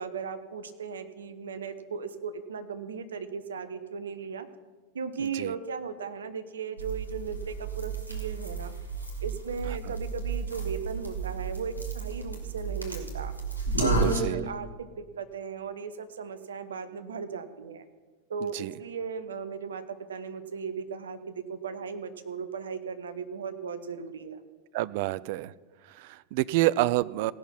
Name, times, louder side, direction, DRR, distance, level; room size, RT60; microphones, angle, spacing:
voice 1, 0.0-4.5 4.9-8.7 9.2-13.3 13.8-17.8 18.3-24.4, right 6 dB, 65° right, 10 dB, 0.8 m, -37 dB
voice 2, 5.2-5.5 9.9-10.0 13.7-14.5 18.4-18.7 24.7-25.5 25.8-27.3, right 17 dB, 50° right, 18 dB, 0.3 m, -29 dB
sound 1, 6.8-14.2, right 3 dB, 90° right, 2.2 m, -32 dB
17.5 x 6.1 x 5.8 m, 1.3 s
figure-of-eight pair, 90°, 0 cm